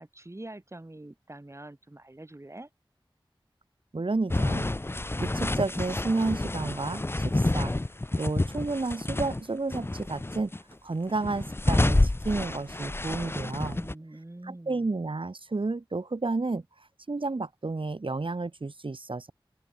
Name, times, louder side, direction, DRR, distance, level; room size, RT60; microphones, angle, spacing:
voice 1, 0.0-2.7 13.7-14.9, right 1 dB, 30° right, 2.7 m, -45 dB
voice 2, 3.9-4.7 5.2-7.7 8.2-10.5 10.8-13.8 14.4-16.6 17.1-19.3, right 3 dB, 75° right, 3.3 m, -31 dB
sound 1, 4.3-9.4 9.7-10.6 11.1-13.9, left 2 dB, 25° left, 0.6 m, -28 dB
open air
wide cardioid pair, 45°, 9 cm